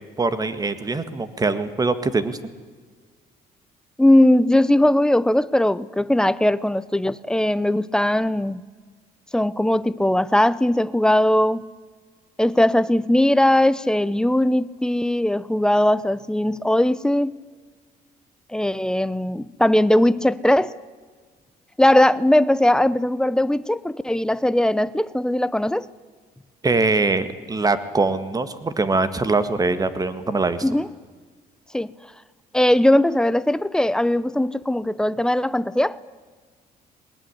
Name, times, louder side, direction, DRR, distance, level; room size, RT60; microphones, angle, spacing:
voice 1, 0.2-2.4 26.6-30.6, right 3 dB, 20° right, 1.8 m, -22 dB
voice 2, 4.0-8.6 9.3-11.7 12.4-17.3 18.5-20.8 21.8-25.9 30.6-30.9 31.7-31.9 32.5-36.0, left 1 dB, 5° left, 0.7 m, -19 dB
21.0 x 20.0 x 9.9 m
cardioid pair, 110°, 17 cm